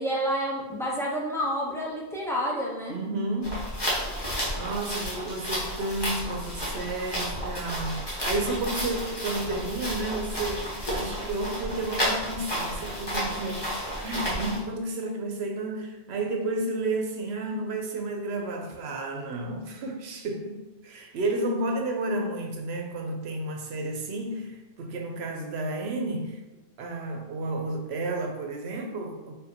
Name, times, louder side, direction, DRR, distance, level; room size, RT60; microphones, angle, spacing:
voice 1, 0.0-3.0, equal, 5° left, -4 dB, 0.7 m, -29 dB
voice 2, 2.9-3.7 4.6-26.4 26.8-29.3, right 2 dB, 80° right, 3 dB, 0.9 m, -32 dB
sound 1, 3.4-14.6, equal, 25° left, 1.2 m, -32 dB
4.9 x 2.6 x 2.9 m, 1.0 s
omnidirectional pair, 1.1 m